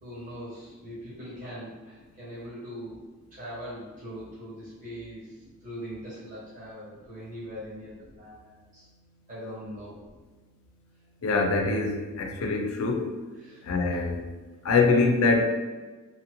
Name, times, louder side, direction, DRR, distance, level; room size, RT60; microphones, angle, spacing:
voice 1, 0.0-3.0 3.3-5.3 5.6-8.9 9.3-10.0 13.4-13.7, equal, 35° right, -9 dB, 1.1 m, -41 dB
voice 2, 11.2-13.1 13.6-14.2 14.6-15.4, left 3 dB, 85° left, 2 dB, 0.4 m, -24 dB
2.8 x 2.6 x 2.9 m, 1.3 s
head